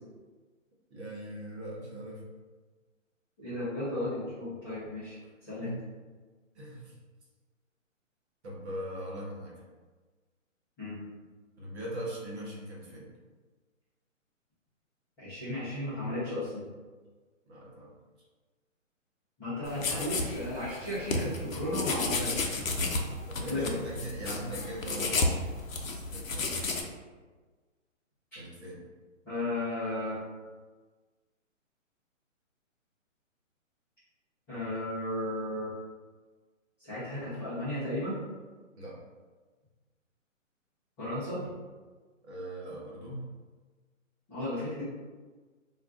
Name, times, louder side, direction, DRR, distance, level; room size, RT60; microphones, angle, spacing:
voice 1, 0.9-2.2 5.6-5.8 6.5-6.9 8.4-9.6 11.6-13.1 17.5-17.9 21.0-21.1 23.3-26.5 28.3-28.8 38.8-39.0 42.2-43.3, right 1 dB, 55° right, -3 dB, 1.1 m, -41 dB
voice 2, 3.4-5.2 5.4-5.7 10.8-11.0 15.2-16.7 19.4-22.5 23.5-23.7 28.3-28.4 29.2-30.2 34.5-35.7 36.8-38.2 41.0-41.4 44.3-44.8, left 1 dB, 5° left, -18 dB, 0.5 m, -34 dB
sound 1, 19.6-26.8, left 3 dB, 85° left, 0.6 m, -32 dB
2.4 x 2.3 x 3.5 m, 1.4 s
hypercardioid pair, 140°, 39 cm